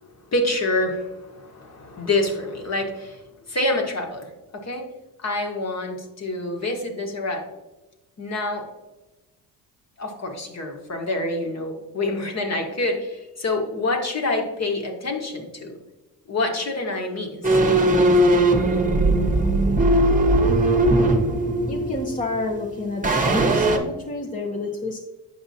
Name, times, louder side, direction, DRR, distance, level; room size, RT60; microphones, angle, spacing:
voice 1, 0.3-4.9 5.2-7.4 8.2-8.7 10.0-15.8 16.3-17.6, left 2 dB, 40° left, 3 dB, 1.5 m, -27 dB
sound 1, 17.4-22.6 23.0-23.8, right 1 dB, 20° right, 1.2 m, -19 dB
voice 2, 21.7-25.0, left 2 dB, 20° left, 0 dB, 0.9 m, -29 dB
8.0 x 5.4 x 2.8 m, 1.1 s
supercardioid pair, 65°, 42 cm